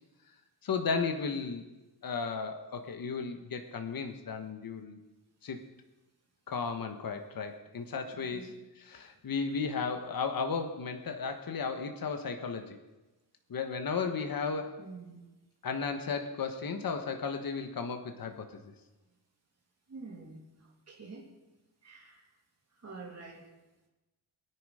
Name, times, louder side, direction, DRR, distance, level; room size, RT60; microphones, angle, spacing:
voice 1, 0.6-1.6 2.0-5.0 5.4-5.6 6.5-12.8 13.5-14.8 15.6-18.7, left 5 dB, 50° left, 6 dB, 1.3 m, -34 dB
voice 2, 14.8-15.3 19.9-21.3 21.8-22.3 22.8-23.5, right 3 dB, 35° right, -2 dB, 2.8 m, -47 dB
22.0 x 10.0 x 5.0 m, 1.1 s
wide cardioid pair, 155°, 45 cm